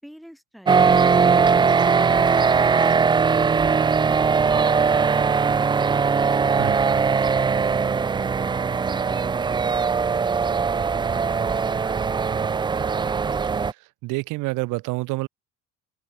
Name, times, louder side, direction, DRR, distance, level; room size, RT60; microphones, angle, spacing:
voice 1, 0.0-1.0, equal, ahead, 7.4 m, -47 dB
sound 1, 0.7-13.7, right 5 dB, 15° right, 0.3 m, -20 dB
voice 2, 14.0-15.3, right 22 dB, 85° right, 1.6 m, -27 dB
open air
cardioid pair, 115°, 30 cm